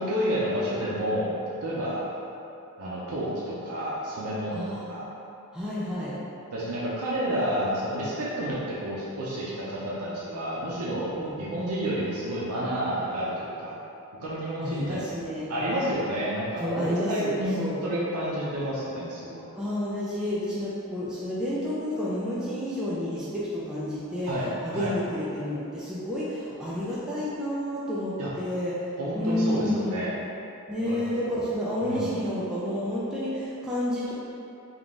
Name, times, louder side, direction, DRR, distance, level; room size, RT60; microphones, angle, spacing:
voice 1, 0.0-1.3 1.6-2.0 2.8-4.6 4.9-5.0 6.5-13.7 14.2-15.2 15.5-19.5 24.3-24.5 24.7-24.9 28.2-28.3 29.0-30.1 30.8-31.0 31.8-32.1, equal, 80° right, -7 dB, 0.6 m, -30 dB
voice 2, 4.5-4.8 5.5-6.2 11.2-11.4 14.6-15.5 16.6-17.8 19.6-24.3 24.6-28.7 29.1-30.0 30.7-34.1, left 1 dB, 5° right, -10 dB, 0.4 m, -30 dB
3.7 x 2.4 x 3.6 m, 2.8 s
head